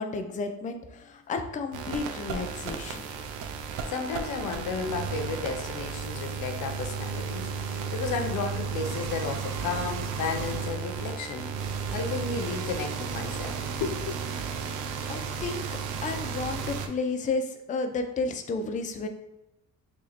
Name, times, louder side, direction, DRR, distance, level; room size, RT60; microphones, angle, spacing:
voice 1, 0.0-3.0 15.1-15.6 16.0-19.1, left 3 dB, 25° left, 6 dB, 0.4 m, -32 dB
sound 1, 1.7-16.9, right 6 dB, 85° right, 0.5 m, -33 dB
voice 2, 3.9-14.2, left 5 dB, 85° left, 5 dB, 0.6 m, -33 dB
2.9 x 2.7 x 4.1 m, 0.91 s
cardioid pair, 90°, 30 cm